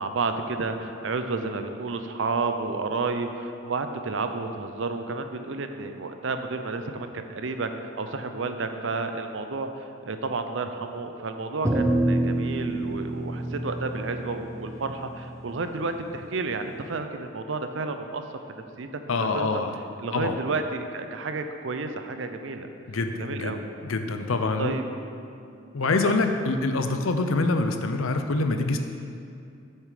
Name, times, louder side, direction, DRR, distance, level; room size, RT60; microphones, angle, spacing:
voice 1, 0.0-18.2 18.5-19.5 20.0-22.7 23.2-23.7 24.6-24.8 25.8-26.1, right 3 dB, 65° right, 7 dB, 0.6 m, -31 dB
sound 1, 11.6-16.2, right 1 dB, 15° right, 0.4 m, -28 dB
voice 2, 19.1-19.7 20.1-20.4 22.9-24.7 25.7-28.8, left 3 dB, 90° left, 6 dB, 0.6 m, -25 dB
7.6 x 6.5 x 5.0 m, 2.5 s
head